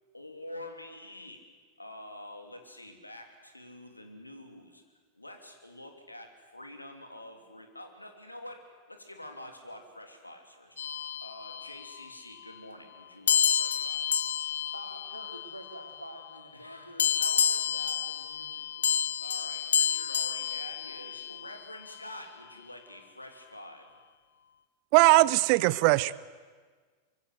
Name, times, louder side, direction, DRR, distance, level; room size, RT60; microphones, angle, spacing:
voice 1, 0.1-1.4 1.8-4.8 5.1-10.8 11.2-14.1 16.5-17.8 19.2-24.0, left 1 dB, 85° left, 5 dB, 3.0 m, -47 dB
sound 1, 10.8-12.0 13.3-16.0 17.0-21.5, left 8 dB, 65° left, 1.0 m, -29 dB
voice 2, 14.7-19.5, right 1 dB, 90° right, 3 dB, 3.6 m, -48 dB
voice 3, 24.9-26.1, right 21 dB, 45° right, 20 dB, 0.7 m, -20 dB
24.5 x 23.5 x 8.0 m, 1.5 s
figure-of-eight pair, 90°, 0 cm